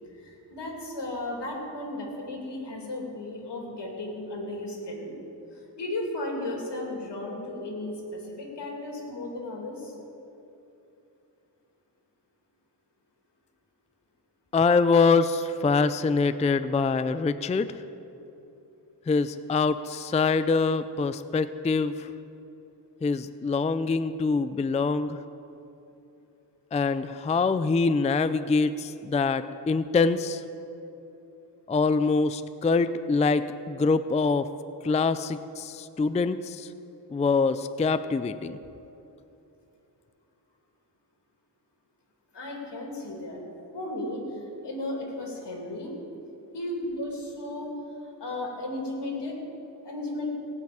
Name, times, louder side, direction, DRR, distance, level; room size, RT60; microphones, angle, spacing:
voice 1, 0.2-5.1 5.8-9.9 42.3-43.4 43.7-46.0 46.5-47.7 48.2-49.4 49.8-50.3, left 1 dB, 75° left, 0 dB, 2.9 m, -34 dB
voice 2, 14.5-17.7 19.1-22.1 23.0-25.2 26.7-30.4 31.7-34.5 34.8-36.7 37.1-38.6, left 4 dB, 20° left, 13 dB, 0.3 m, -24 dB
18.0 x 6.0 x 8.7 m, 2.9 s
wide cardioid pair, 90°, 42 cm